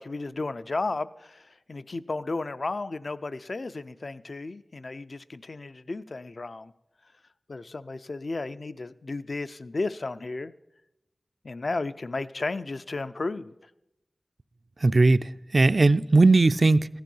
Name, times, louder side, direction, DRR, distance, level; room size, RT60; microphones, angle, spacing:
voice 1, 0.0-6.7 7.5-10.5 11.4-13.5, left 3 dB, 65° left, 0.4 m, -33 dB
voice 2, 14.8-16.9, right 3 dB, 55° right, 0.4 m, -19 dB
14.5 x 10.5 x 5.4 m
wide cardioid pair, 50°, 0 cm